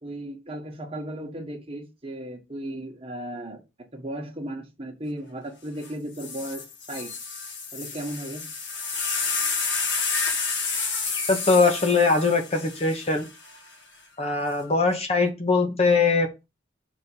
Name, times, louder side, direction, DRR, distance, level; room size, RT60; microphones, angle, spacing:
voice 1, 0.0-7.1 7.7-8.5, right 1 dB, 30° right, 1.4 m, -36 dB
sound 1, 5.8-5.9 6.2-13.6 14.5-14.9, left 4 dB, 65° left, 1.7 m, -30 dB
voice 2, 11.3-13.2 14.2-16.4, left 3 dB, 30° left, 1.1 m, -21 dB
6.2 x 3.8 x 5.5 m
head